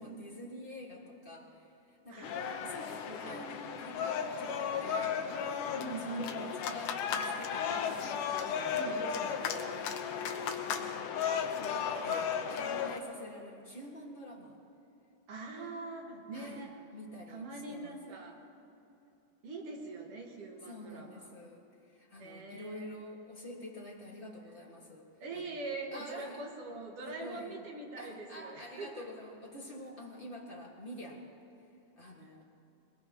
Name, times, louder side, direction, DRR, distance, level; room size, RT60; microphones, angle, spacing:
voice 1, 0.0-8.8 9.3-9.9 10.5-11.0 11.5-11.8 12.0-14.6 15.5-16.6 16.9-18.2 20.6-25.6 25.9-26.5 27.1-27.6 28.0-31.3 32.0-32.4, left 1 dB, 35° left, -3 dB, 0.8 m, -48 dB
voice 2, 2.1-3.5 5.7-6.6 8.7-9.4 15.3-16.8 17.3-18.4 19.4-21.3 22.2-22.9 25.2-29.1, right 3 dB, 55° right, 0 dB, 2.2 m, -43 dB
sound 1, 2.2-13.0, left 7 dB, 80° left, 2.4 m, -35 dB
22.0 x 21.0 x 3.0 m, 2.9 s
omnidirectional pair, 3.7 m